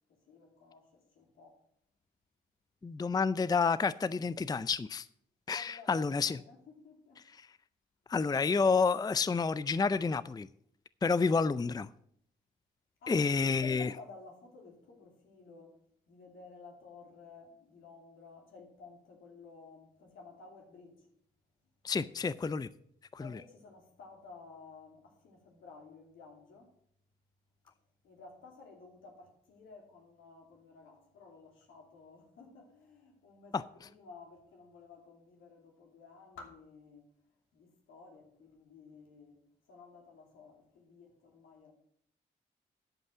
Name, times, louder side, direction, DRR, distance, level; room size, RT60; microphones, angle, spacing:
voice 1, 0.1-1.6 5.5-7.3 13.0-15.8 16.1-21.1 23.2-26.7 27.7-27.8 28.0-41.7, left 4 dB, 80° left, 0 dB, 2.9 m, -54 dB
voice 2, 2.8-5.1 5.5-6.4 8.1-10.5 11.0-11.9 13.1-13.9 21.8-22.7 23.1-23.2 33.5-33.6, left 4 dB, 20° left, 17 dB, 0.4 m, -29 dB
11.5 x 5.4 x 7.4 m, 0.67 s
supercardioid pair, 50°, 20 cm